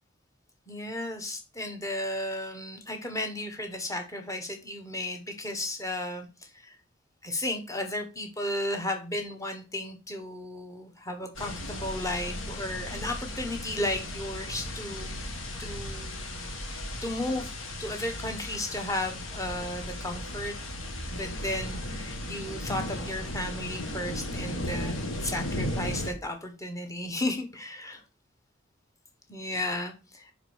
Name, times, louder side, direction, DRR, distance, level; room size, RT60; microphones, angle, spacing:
voice 1, 0.7-6.8 7.2-15.3 15.6-16.6 17.0-17.5 17.8-20.6 21.1-28.0 29.3-30.3, left 1 dB, 15° left, 5 dB, 1.1 m, -34 dB
sound 1, 11.3-26.1, left 1 dB, 85° left, 1.7 m, -36 dB
5.2 x 4.9 x 6.3 m, 0.32 s
head